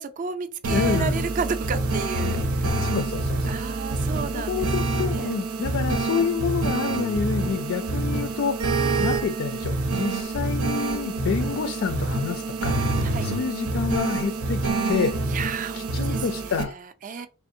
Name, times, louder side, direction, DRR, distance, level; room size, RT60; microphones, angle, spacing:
voice 1, 0.0-2.8 3.5-4.7 5.1-5.3 7.9-8.1 8.8-9.0 13.0-13.3 15.3-17.3, right 5 dB, 35° right, 0.3 m, -33 dB
sound 1, 0.6-16.6, right 2 dB, 80° right, 0.6 m, -26 dB
voice 2, 0.7-1.2 2.8-3.6 4.3-12.7 13.2-15.2 15.7-16.8, left 6 dB, 60° left, 0.3 m, -28 dB
3.5 x 3.5 x 2.5 m
head